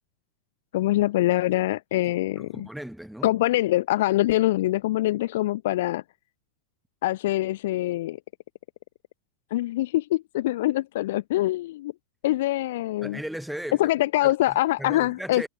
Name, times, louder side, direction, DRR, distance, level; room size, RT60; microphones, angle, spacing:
voice 1, 0.7-2.7 3.2-6.0 7.0-8.2 9.5-11.9 12.2-13.2 13.8-15.5, left 16 dB, 55° left, 1.1 m, -24 dB
voice 2, 2.4-3.3 13.0-13.9 14.2-15.5, right 1 dB, ahead, 7.9 m, -37 dB
figure-of-eight pair, 90°, 0 cm